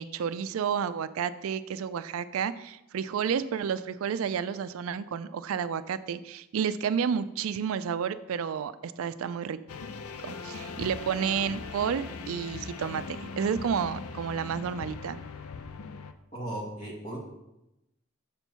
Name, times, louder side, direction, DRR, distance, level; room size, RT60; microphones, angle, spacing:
voice 1, 0.0-9.6 10.2-15.2, right 7 dB, 75° right, 14 dB, 0.3 m, -31 dB
sound 1, 9.7-16.1, left 4 dB, 90° left, 0.5 m, -40 dB
voice 2, 16.3-17.2, right 1 dB, 35° left, -3 dB, 2.0 m, -36 dB
6.8 x 4.5 x 5.5 m, 0.91 s
head